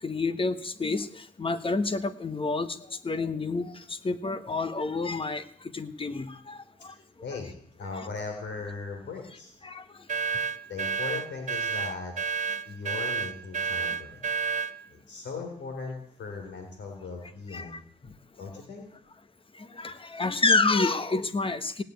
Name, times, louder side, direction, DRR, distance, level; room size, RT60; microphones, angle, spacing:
voice 1, 0.0-6.9 9.6-9.8 17.5-18.1 19.6-21.8, left 3 dB, 25° left, 12 dB, 1.2 m, -29 dB
voice 2, 7.8-9.5 10.7-12.1 12.7-14.2 14.9-17.8 18.4-18.8, left 4 dB, 65° left, 3 dB, 3.7 m, -38 dB
sound 1, 10.1-14.8, right 6 dB, 40° right, 0.9 m, -30 dB
18.0 x 6.9 x 9.4 m, 0.63 s
cardioid pair, 90°, 20 cm